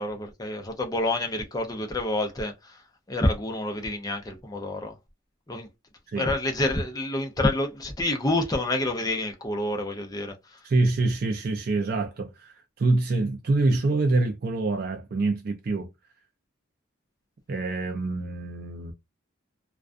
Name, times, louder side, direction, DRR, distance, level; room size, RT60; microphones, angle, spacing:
voice 1, 0.0-2.8 3.1-4.9 5.5-5.7 6.2-10.6, left 1 dB, 20° left, 0.5 m, -28 dB
voice 2, 10.6-15.9 17.5-18.9, right 2 dB, 45° right, 0.3 m, -26 dB
2.3 x 2.2 x 2.4 m
head